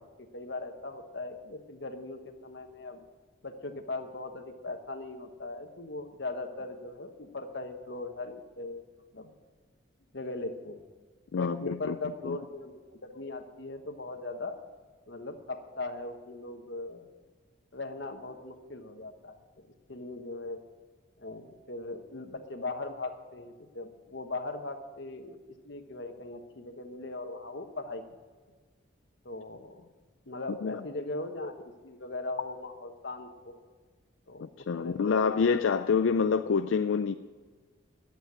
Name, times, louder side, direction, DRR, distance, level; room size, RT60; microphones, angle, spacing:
voice 1, 0.0-3.0 3.4-8.8 9.1-9.3 10.1-10.9 11.4-14.6 15.1-17.1 17.7-19.4 19.9-20.6 21.2-28.0 29.2-29.9 30.3-33.6 34.3-35.6, left 2 dB, 60° left, 6 dB, 1.2 m, -39 dB
voice 2, 11.3-11.9 12.2-12.4 30.6-30.8 34.4-37.1, left 5 dB, 80° left, 9 dB, 0.4 m, -27 dB
10.5 x 8.1 x 9.5 m, 1.4 s
head